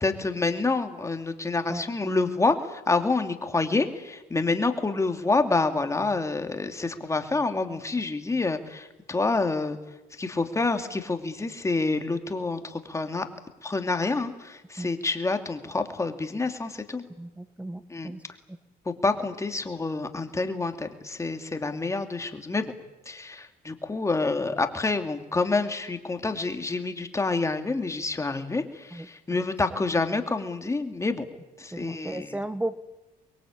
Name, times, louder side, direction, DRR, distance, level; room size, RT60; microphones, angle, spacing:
voice 1, 0.0-9.8 10.2-13.3 13.6-17.0 17.9-18.1 18.9-22.7 23.1-31.2 31.6-32.3, left 3 dB, 15° left, 6 dB, 2.6 m, -27 dB
voice 2, 17.2-18.2 28.9-29.4 31.7-32.8, right 1 dB, 10° right, 13 dB, 1.1 m, -35 dB
24.5 x 22.0 x 8.7 m, 1.0 s
cardioid pair, 110°, 17 cm